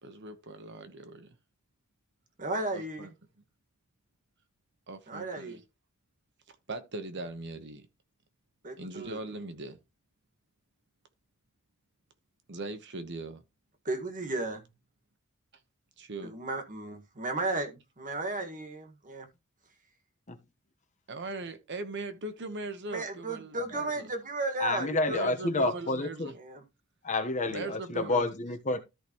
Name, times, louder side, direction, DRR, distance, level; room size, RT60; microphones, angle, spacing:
voice 1, 0.0-1.3 2.7-3.1 4.9-5.6 6.7-7.8 8.8-9.8 12.5-13.4 16.0-16.3 21.1-24.1 25.1-26.3 27.5-28.3, right 2 dB, 55° right, 1.1 m, -40 dB
voice 2, 2.4-3.1 5.1-5.6 8.6-9.4 13.8-14.6 16.2-19.3 22.9-25.3 26.4-26.6, right 2 dB, 40° right, 1.8 m, -34 dB
voice 3, 24.6-26.3 27.0-28.8, left 2 dB, 35° left, 1.1 m, -29 dB
13.5 x 5.1 x 3.0 m
head